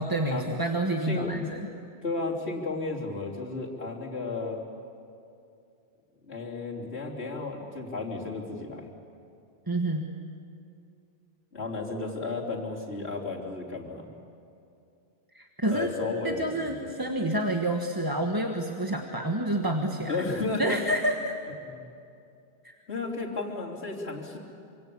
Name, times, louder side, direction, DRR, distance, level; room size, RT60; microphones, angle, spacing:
voice 1, 0.0-1.6 9.7-10.1 15.3-15.9 16.2-20.1 20.6-21.3 22.6-22.7, right 1 dB, 20° right, 2 dB, 1.3 m, -28 dB
voice 2, 1.1-1.4 2.0-4.6 6.3-8.9 11.5-14.1 15.7-17.0 20.1-20.8 21.6-21.8 22.9-24.4, left 3 dB, 75° left, -2 dB, 3.6 m, -33 dB
26.5 x 26.0 x 8.6 m, 2.5 s
omnidirectional pair, 1.1 m